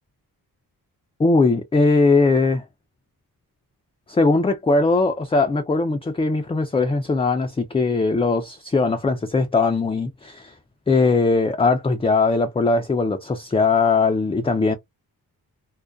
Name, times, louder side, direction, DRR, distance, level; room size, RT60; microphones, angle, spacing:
voice 1, 1.2-2.6 4.1-10.5 10.9-14.8, left 3 dB, 15° left, 0.3 m, -20 dB
2.3 x 2.1 x 2.5 m
cardioid pair, 75°, 39 cm